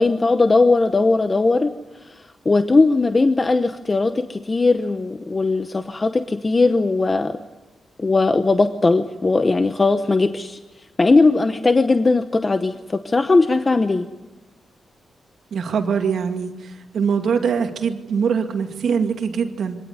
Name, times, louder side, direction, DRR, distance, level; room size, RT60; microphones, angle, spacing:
voice 1, 0.0-1.7 2.0-7.4 8.0-10.6 11.0-14.1, left 3 dB, 25° left, 9 dB, 0.9 m, -18 dB
voice 2, 15.5-16.5 16.9-19.8, right 6 dB, 70° right, 5 dB, 2.2 m, -22 dB
24.0 x 18.0 x 9.6 m, 1.1 s
wide cardioid pair, 130°, 0 cm